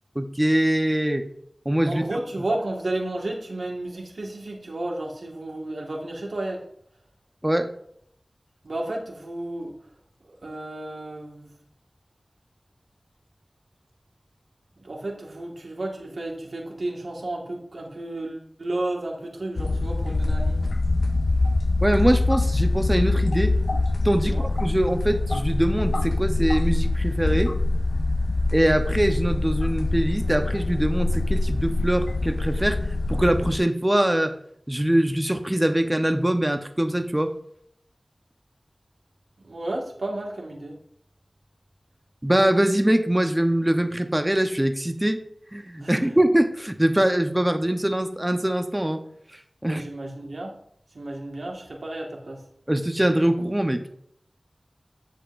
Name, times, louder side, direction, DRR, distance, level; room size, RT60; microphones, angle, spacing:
voice 1, 0.1-1.3 1.6-2.0 7.4-7.7 21.8-23.5 24.0-27.5 28.5-32.8 33.1-34.3 34.7-37.3 42.2-45.2 45.5-49.0 49.6-49.8 52.7-53.8, right 1 dB, 15° right, 7 dB, 0.9 m, -23 dB
voice 2, 1.9-6.6 8.6-9.8 10.2-11.5 14.8-20.6 24.2-24.5 39.4-40.8 45.8-46.1 49.6-50.6 50.9-52.4, right 2 dB, 90° right, -1 dB, 1.8 m, -32 dB
sound 1, 19.6-33.6, left 2 dB, 85° left, 0.4 m, -24 dB
10.0 x 7.7 x 2.6 m, 0.69 s
wide cardioid pair, 50°, 0 cm